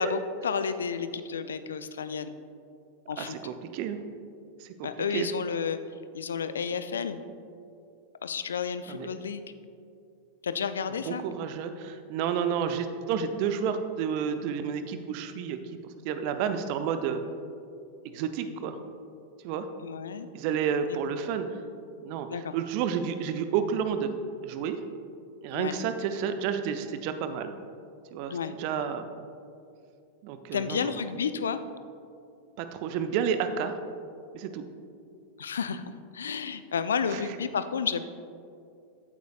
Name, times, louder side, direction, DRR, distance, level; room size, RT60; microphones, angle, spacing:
voice 1, 0.0-2.3 3.1-3.4 4.8-5.8 6.1-7.3 8.2-9.4 10.4-11.2 19.8-20.3 22.3-22.5 25.5-25.8 28.3-28.6 30.5-31.6 35.4-35.8 36.1-38.0, left 6 dB, 65° left, 11 dB, 0.4 m, -31 dB
voice 2, 3.2-4.0 4.6-5.3 8.9-9.2 11.1-15.6 16.0-17.2 18.0-18.8 19.4-19.7 20.3-21.5 22.0-24.1 24.4-24.8 25.4-27.5 28.1-29.1 30.2-30.9 32.6-33.8 34.3-34.6 37.1-37.2, right 7 dB, 45° right, 9 dB, 0.6 m, -30 dB
14.5 x 9.2 x 2.4 m, 2.5 s
figure-of-eight pair, 90°, 0 cm